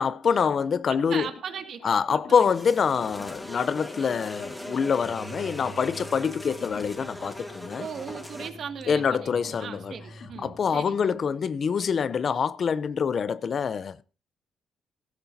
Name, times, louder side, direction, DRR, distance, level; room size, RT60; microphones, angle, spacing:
voice 1, 0.0-1.3 1.8-7.9 8.9-9.9 10.4-14.0, left 6 dB, 50° left, 0.6 m, -25 dB
sound 1, 1.1-11.6, left 4 dB, 75° left, 4.1 m, -50 dB
voice 2, 1.1-2.0 2.4-2.5 7.8-11.2, right 7 dB, 60° right, 2.1 m, -38 dB
sound 2, 2.3-8.5, left 1 dB, 5° left, 2.4 m, -40 dB
sound 3, 5.0-10.6, right 3 dB, 35° right, 5.0 m, -48 dB
16.0 x 14.0 x 2.8 m
cardioid pair, 90°, 0 cm